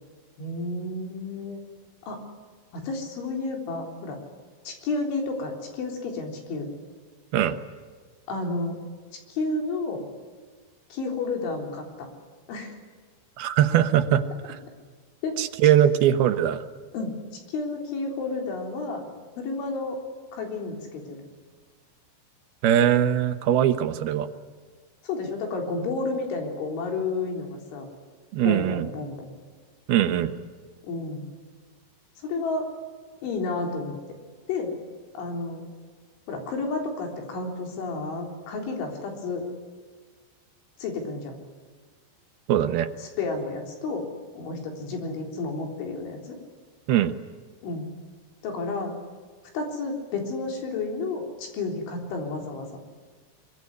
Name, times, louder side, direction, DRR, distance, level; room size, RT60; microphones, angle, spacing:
voice 1, 0.4-1.6 2.1-2.2 2.7-4.2 4.7-6.7 8.3-8.8 9.3-10.0 10.9-12.1 12.5-12.7 15.2-15.4 16.9-17.1 17.5-19.1 19.4-20.0 20.3-21.2 25.0-27.9 28.4-29.4 30.8-31.3 32.2-32.7 33.2-33.9 34.5-34.7 35.1-35.6 36.3-39.5 40.8-41.4 43.0-44.1 44.4-46.4 47.6-47.9 48.4-48.9 49.5-52.7, left 3 dB, 85° left, 2 dB, 6.2 m, -31 dB
voice 2, 13.4-14.6 15.4-16.6 22.6-24.3 28.3-28.9 29.9-30.3 42.5-42.9 46.9-47.1, right 10 dB, 70° right, 8 dB, 2.7 m, -21 dB
24.0 x 22.5 x 9.8 m, 1.5 s
omnidirectional pair, 5.3 m